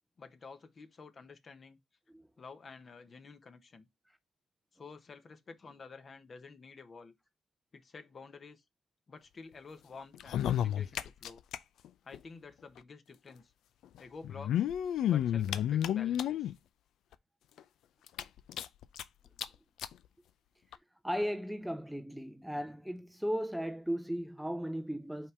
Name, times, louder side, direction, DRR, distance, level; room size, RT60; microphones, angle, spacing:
voice 1, 0.2-1.8 2.4-3.9 4.7-7.1 7.7-8.6 9.1-11.4 12.0-13.5 14.0-14.7 15.1-16.5, left 4 dB, 40° left, 1.2 m, -51 dB
sound 1, 10.1-11.6 11.8-11.9 12.1-12.2 13.3-13.4 14.2-16.5 17.1-17.2 17.6-17.7 18.1-19.0 19.4-19.5 19.8-19.9 20.7-20.8, left 10 dB, 75° left, 0.5 m, -31 dB
voice 2, 21.0-25.3, equal, 5° right, 0.6 m, -36 dB
5.4 x 3.7 x 4.7 m
cardioid pair, 90°, 0 cm